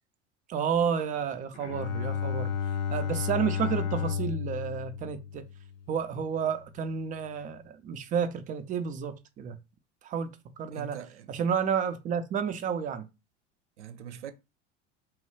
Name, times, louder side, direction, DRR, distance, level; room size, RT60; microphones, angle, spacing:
voice 1, 0.5-2.5 2.9-5.5 5.9-9.6 10.0-10.3 10.6-11.0 11.3-13.1, right 7 dB, 25° right, 0.4 m, -31 dB
Bowed string instrument, 1.5-6.0, left 7 dB, 55° left, 0.6 m, -32 dB
voice 2, 10.7-11.3 13.8-14.3, right 9 dB, 75° right, 0.5 m, -42 dB
3.1 x 2.2 x 3.1 m
figure-of-eight pair, 75°, 35 cm